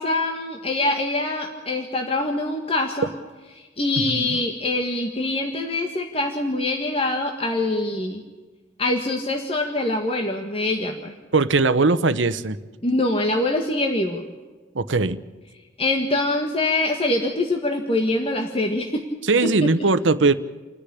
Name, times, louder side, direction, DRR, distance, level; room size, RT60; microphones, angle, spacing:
voice 1, 0.0-3.1 3.5-8.2 8.8-11.1 12.8-14.2 15.8-19.0, left 2 dB, 30° left, 3 dB, 1.8 m, -24 dB
voice 2, 4.0-4.4 11.3-12.6 14.7-15.2 19.3-20.3, right 3 dB, 85° right, 13 dB, 1.0 m, -20 dB
29.5 x 10.0 x 10.0 m, 1.3 s
head